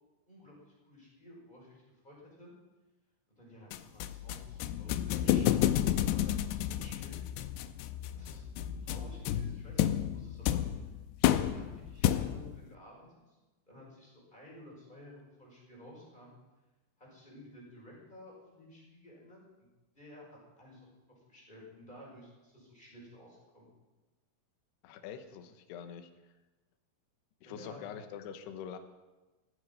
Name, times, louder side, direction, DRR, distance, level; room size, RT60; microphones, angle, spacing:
voice 1, 0.3-2.5 3.3-7.2 8.1-8.5 8.8-10.6 11.4-13.4 13.7-16.3 17.0-19.7 19.9-20.9 21.3-23.7 27.4-27.9, left 1 dB, 10° left, -3 dB, 5.0 m, -53 dB
sound 1, 3.7-12.6, left 12 dB, 90° left, 2.4 m, -31 dB
voice 2, 24.8-26.1 27.4-28.8, left 8 dB, 75° left, 8 dB, 2.8 m, -44 dB
17.0 x 14.5 x 5.4 m, 1.1 s
omnidirectional pair, 5.6 m